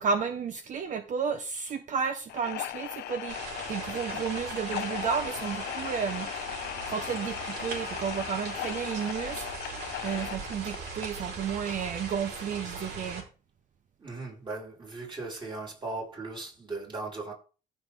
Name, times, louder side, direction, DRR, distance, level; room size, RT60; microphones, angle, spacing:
voice 1, 0.0-3.4 3.7-6.3 6.9-9.5 10.0-13.2, right 6 dB, 45° right, 1.1 m, -32 dB
sound 1, 2.3-11.2, left 15 dB, 75° left, 0.6 m, -38 dB
sound 2, 3.3-13.2, right 4 dB, 80° right, 5.2 m, -39 dB
voice 2, 14.0-17.3, right 3 dB, 30° right, 7.2 m, -38 dB
15.0 x 6.4 x 3.8 m
cardioid pair, 110°, 17 cm